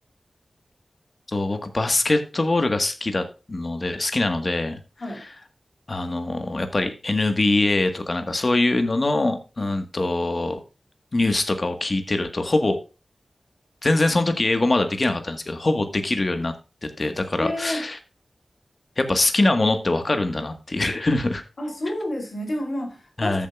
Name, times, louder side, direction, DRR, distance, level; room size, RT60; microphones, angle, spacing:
voice 1, 1.3-4.8 5.9-10.6 11.1-12.8 13.8-16.5 16.8-18.0 19.0-21.4 23.2-23.5, left 2 dB, 40° left, 7 dB, 1.6 m, -23 dB
voice 2, 17.4-17.9 21.6-23.5, left 1 dB, 55° left, 2 dB, 3.7 m, -29 dB
14.0 x 7.4 x 2.4 m, 0.31 s
wide cardioid pair, 100°, 0 cm